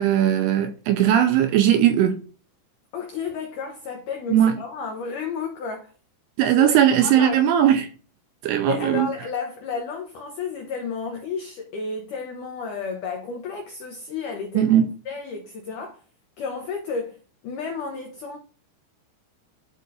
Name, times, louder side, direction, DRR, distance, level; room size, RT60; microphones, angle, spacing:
voice 1, 0.0-2.2 4.3-4.6 6.4-7.9 8.4-9.1 14.5-14.9, right 10 dB, 85° right, 2.5 m, -18 dB
voice 2, 2.9-5.9 6.5-6.7 7.0-7.6 8.6-14.7 15.0-16.0 16.4-17.2 17.4-18.4, left 5 dB, 85° left, 1.8 m, -32 dB
12.0 x 4.1 x 2.5 m
omnidirectional pair, 5.1 m